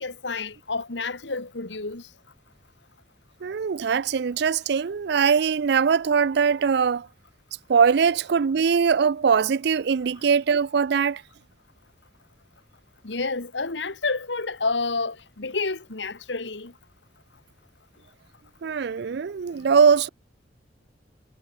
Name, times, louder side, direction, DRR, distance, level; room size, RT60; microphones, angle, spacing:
voice 1, 0.0-2.1 13.0-16.7, left 3 dB, 80° left, 1.9 m, -29 dB
voice 2, 3.4-7.1 7.7-11.2 18.6-20.1, right 6 dB, 65° right, 0.4 m, -21 dB
head